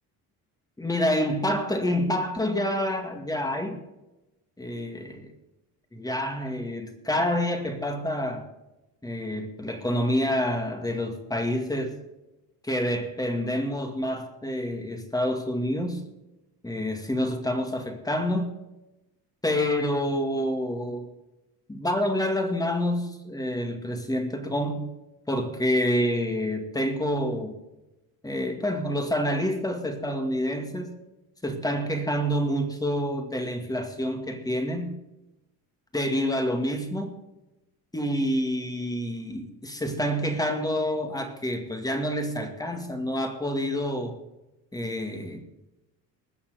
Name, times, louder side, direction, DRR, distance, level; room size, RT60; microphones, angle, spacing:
voice 1, 0.8-3.8 4.6-5.3 5.9-8.4 9.0-12.0 12.6-16.0 16.6-18.6 19.4-21.1 21.7-24.9 25.3-27.6 28.2-30.9 31.4-35.0 35.9-37.2 37.9-44.2 44.7-45.4, equal, 10° left, 5 dB, 2.0 m, -28 dB
20.0 x 7.2 x 5.0 m, 0.96 s
cardioid pair, 125°, 35 cm